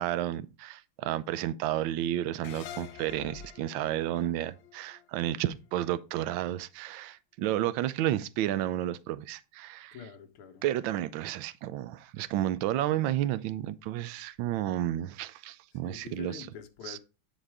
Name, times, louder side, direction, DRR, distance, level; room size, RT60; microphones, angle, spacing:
voice 1, 0.0-10.0 10.6-16.5 16.8-17.0, right 13 dB, 75° right, 1.3 m, -31 dB
sound 1, 2.4-5.7, left 9 dB, 70° left, 1.2 m, -47 dB
voice 2, 9.9-10.6 15.7-17.0, left 7 dB, 85° left, 1.9 m, -45 dB
10.0 x 4.1 x 4.7 m
omnidirectional pair, 2.3 m